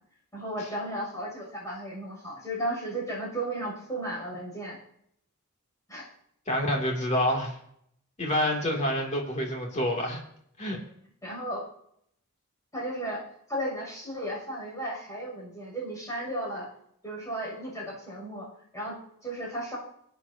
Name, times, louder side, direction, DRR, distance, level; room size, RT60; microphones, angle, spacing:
voice 1, 0.3-4.8 5.9-6.1 11.2-11.6 12.7-13.2 13.5-16.7 17.0-18.5 18.7-19.8, right 1 dB, 15° left, -4 dB, 6.7 m, -34 dB
voice 2, 6.5-7.6 8.2-10.2 10.6-10.8, left 1 dB, 30° left, -1 dB, 2.8 m, -27 dB
23.5 x 9.9 x 2.8 m, 0.70 s
head